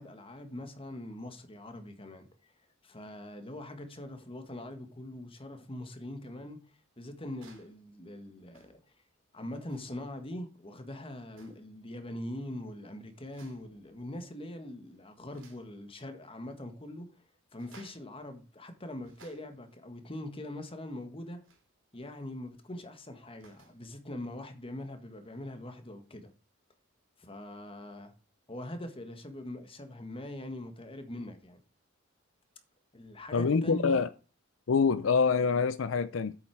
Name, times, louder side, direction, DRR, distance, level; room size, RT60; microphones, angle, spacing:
voice 1, 0.0-2.5 2.8-6.6 7.0-8.8 9.3-17.1 17.5-21.4 21.9-26.3 27.2-28.1 28.5-31.6 32.9-34.0, left 1 dB, 25° left, 1.6 m, -42 dB
sound 1, 7.3-7.8 8.5-8.9 9.6-10.0 11.3-11.8 13.2-13.8 14.2-14.6 14.9-15.7 17.5-18.1 18.8-19.7 21.4-21.7 23.1-23.8 25.3-25.4, right 3 dB, 75° right, 3.3 m, -60 dB
voice 2, 33.3-34.1 34.7-36.4, left 5 dB, 75° left, 0.5 m, -26 dB
8.5 x 7.3 x 4.8 m
head